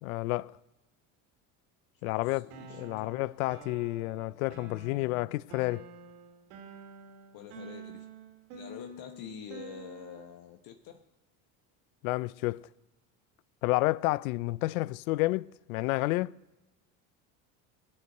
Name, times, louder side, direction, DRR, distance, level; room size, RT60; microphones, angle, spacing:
voice 1, 0.0-0.5 2.0-5.8 12.0-12.6 13.6-16.3, left 20 dB, 85° left, 0.5 m, -30 dB
voice 2, 2.1-3.1 7.3-8.1 8.5-11.0 14.8-14.9, left 9 dB, 55° left, 1.2 m, -46 dB
sound 1, 2.5-10.4, right 4 dB, 75° right, 2.7 m, -49 dB
22.5 x 8.7 x 6.5 m
supercardioid pair, 90°, 41 cm